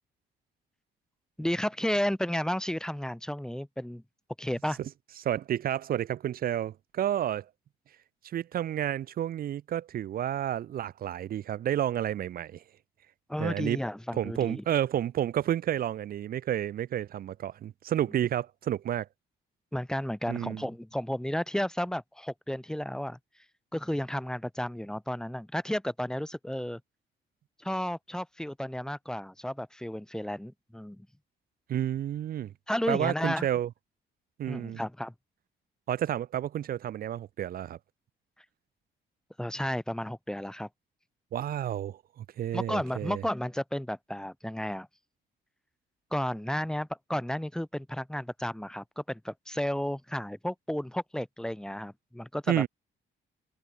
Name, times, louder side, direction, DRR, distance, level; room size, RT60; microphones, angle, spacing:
voice 1, 1.4-4.0 4.4-4.8 13.3-14.6 19.7-23.2 23.7-26.8 27.6-31.1 32.7-33.5 34.5-35.1 39.4-40.7 42.5-44.9 46.1-52.7, equal, 5° left, 0.8 m, -32 dB
voice 2, 5.2-7.5 8.3-12.6 13.4-13.8 14.1-19.1 20.3-20.7 31.7-32.5 32.9-33.7 34.4-34.8 35.9-37.8 41.3-43.2 52.5-52.7, right 11 dB, 50° right, 0.4 m, -30 dB
cardioid pair, 90°, 20 cm